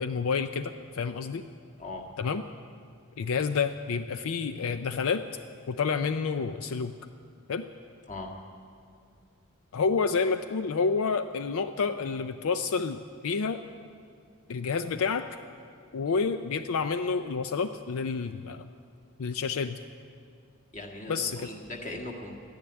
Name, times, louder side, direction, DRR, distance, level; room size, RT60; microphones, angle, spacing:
voice 1, 0.0-1.4 2.2-2.4 3.2-5.2 5.7-7.0 7.5-7.7 9.7-13.6 14.5-15.3 15.9-18.6 19.2-19.8 21.1-21.5, left 5 dB, 80° left, 10 dB, 0.5 m, -29 dB
voice 2, 20.7-22.3, left 2 dB, 35° left, 0 dB, 1.7 m, -39 dB
13.5 x 10.5 x 9.7 m, 2.3 s
head